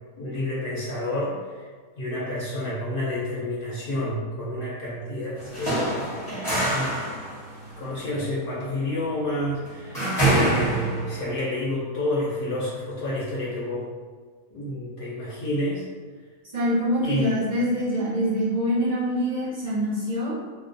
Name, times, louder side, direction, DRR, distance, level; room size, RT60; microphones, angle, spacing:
voice 1, 0.2-1.7 2.0-6.3 6.6-7.2 7.8-13.9 14.5-15.8 17.0-17.4, left 1 dB, 55° left, -8 dB, 0.6 m, -29 dB
sound 1, 5.4-11.3, right 1 dB, 20° left, 0.7 m, -26 dB
voice 2, 16.5-20.3, equal, 45° right, -10 dB, 0.6 m, -25 dB
2.3 x 2.1 x 2.5 m, 1.5 s
omnidirectional pair, 1.5 m